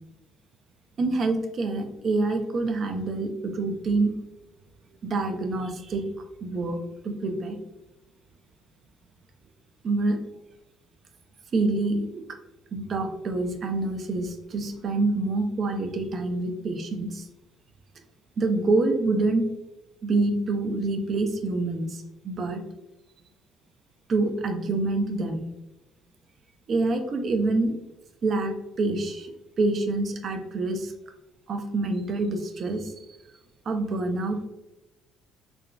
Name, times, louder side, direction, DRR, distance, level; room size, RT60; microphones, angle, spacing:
voice 1, 1.0-4.1 5.0-6.0 6.4-6.8 7.0-7.6 9.8-10.2 11.5-12.2 12.7-17.3 18.4-19.4 20.0-22.6 24.1-25.4 26.7-27.7 28.2-29.3 29.6-30.9 31.5-32.9 33.7-34.4, right 2 dB, 50° right, 5 dB, 0.5 m, -26 dB
3.7 x 2.1 x 2.2 m, 0.98 s
supercardioid pair, 75°, 0 cm